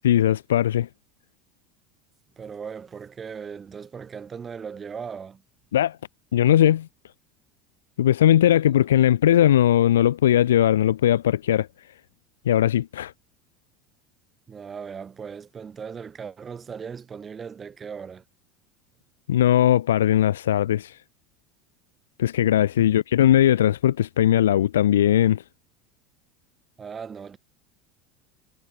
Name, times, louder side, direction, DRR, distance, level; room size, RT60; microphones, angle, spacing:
voice 1, 0.0-0.9 5.7-6.0 6.3-6.9 8.0-11.7 12.5-13.1 19.3-20.9 22.2-25.4, left 11 dB, 70° left, 0.5 m, -19 dB
voice 2, 2.4-5.4 14.5-18.2 26.8-27.4, right 6 dB, 25° right, 2.6 m, -38 dB
figure-of-eight pair, 75°, 0 cm